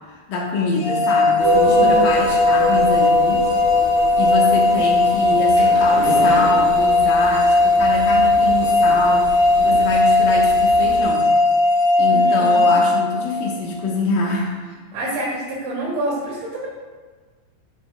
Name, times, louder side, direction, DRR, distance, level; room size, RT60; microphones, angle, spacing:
voice 1, 0.1-3.5 4.2-11.3 12.0-14.6, left 3 dB, 80° left, -2 dB, 2.0 m, -25 dB
sound 1, 0.8-13.7, left 2 dB, 55° left, 2.4 m, -17 dB
sound 2, 1.4-11.0, right 1 dB, 90° right, 3.6 m, -26 dB
voice 2, 1.6-2.0 4.7-4.9 12.1-12.7 14.9-16.7, right 1 dB, 70° right, -7 dB, 4.6 m, -27 dB
sound 3, 5.2-7.3 8.3-9.2 9.6-10.1 10.3-10.4 10.8-10.9, equal, 40° right, 1.1 m, -30 dB
13.5 x 6.6 x 2.2 m, 1.4 s
omnidirectional pair, 5.5 m